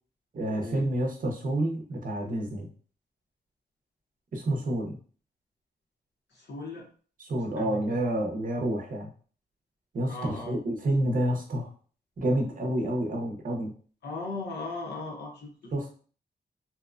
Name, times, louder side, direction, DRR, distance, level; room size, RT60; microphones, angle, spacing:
voice 1, 0.3-2.7 4.3-5.0 7.2-9.1 9.9-11.7 12.2-13.7 15.7-15.9, right 1 dB, 50° right, 1 dB, 0.6 m, -29 dB
voice 2, 6.3-6.9 7.6-8.0 10.1-10.5 14.0-15.7, left 2 dB, 85° left, -1 dB, 0.8 m, -37 dB
2.8 x 2.1 x 2.4 m, 0.42 s
wide cardioid pair, 145°, 18 cm